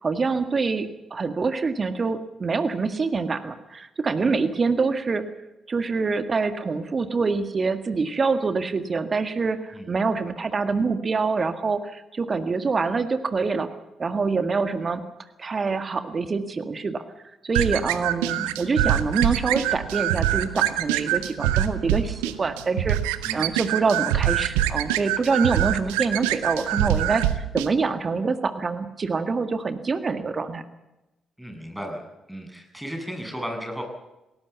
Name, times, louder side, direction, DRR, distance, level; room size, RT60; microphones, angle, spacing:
voice 1, 0.0-5.2 5.7-13.7 14.0-15.0 15.4-17.0 17.4-23.0 23.3-30.6, right 4 dB, 40° right, 9 dB, 1.8 m, -25 dB
sound 1, 17.5-27.7, right 13 dB, 75° right, 0.9 m, -25 dB
voice 2, 31.4-32.0 32.3-33.8, equal, 5° right, 4 dB, 7.3 m, -35 dB
21.5 x 18.0 x 7.1 m, 0.98 s
figure-of-eight pair, 40°, 0 cm